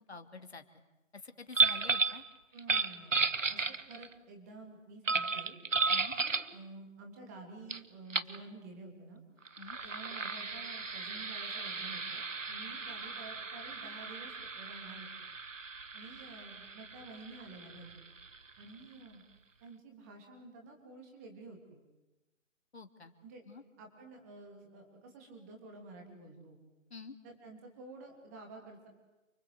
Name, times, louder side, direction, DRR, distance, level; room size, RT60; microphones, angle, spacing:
voice 1, 0.1-0.6 1.1-2.2 5.9-6.1 9.6-9.8 22.7-23.1 23.5-23.6 26.9-27.1, left 4 dB, 50° left, 7 dB, 2.8 m, -48 dB
sound 1, 1.5-2.2 2.6-4.1 5.1-6.5 7.7-7.8 8.1-8.4 9.4-18.7, right 4 dB, 70° right, 1.6 m, -34 dB
voice 2, 2.5-5.6 6.1-9.2 9.8-15.1 15.9-18.0 18.6-19.2 19.6-21.8 23.2-23.4 23.8-26.6 27.2-28.9, right 3 dB, 10° right, 2 dB, 3.1 m, -51 dB
29.5 x 25.0 x 8.1 m, 1.0 s
figure-of-eight pair, 165°, 40 cm